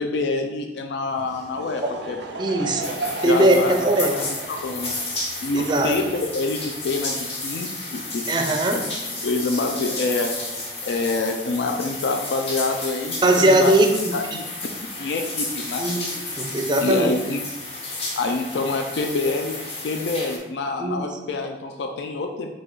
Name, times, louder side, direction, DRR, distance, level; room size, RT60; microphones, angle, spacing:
voice 1, 0.0-2.2 3.2-5.0 5.4-8.2 8.7-10.3 10.8-13.8 14.1-14.4 15.0-16.1 16.8-17.4 18.2-19.6 19.8-22.5, left 3 dB, 80° left, 4 dB, 0.4 m, -26 dB
Laughter / Crowd, 1.1-6.8, right 3 dB, 90° right, 0.5 m, -35 dB
voice 2, 2.4-2.9 3.2-4.1 5.5-6.0 8.3-8.8 13.2-14.1 15.8-17.1 20.8-21.1, right 1 dB, 25° right, 4 dB, 0.4 m, -20 dB
sound 1, 2.8-20.4, left 2 dB, 35° left, 0.8 m, -32 dB
4.7 x 2.4 x 3.8 m, 1.1 s
head